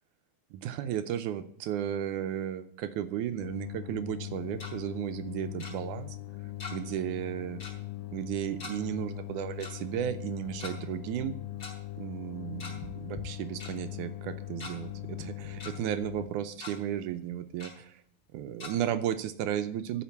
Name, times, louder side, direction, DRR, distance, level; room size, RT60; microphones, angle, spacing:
voice 1, 0.5-6.2 6.7-7.6 8.1-11.4 12.0-18.0 18.3-20.0, right 10 dB, 80° right, 10 dB, 1.9 m, -34 dB
sound 1, 3.4-16.3, left 14 dB, 90° left, 2.5 m, -41 dB
Tick-tock, 4.3-4.7 5.6-5.7 6.6-7.0 7.2-7.3 7.6-7.8 8.6-8.7 9.6-9.7 10.5-10.7 11.6-11.7 12.4-12.9 13.2-13.3 13.6-13.7 14.3-14.7 15.2-15.7 16.1-16.3 16.6-16.7 17.6-17.7 18.6-18.7, left 3 dB, 35° left, 4.2 m, -42 dB
13.0 x 5.2 x 8.2 m, 0.66 s
omnidirectional pair, 3.9 m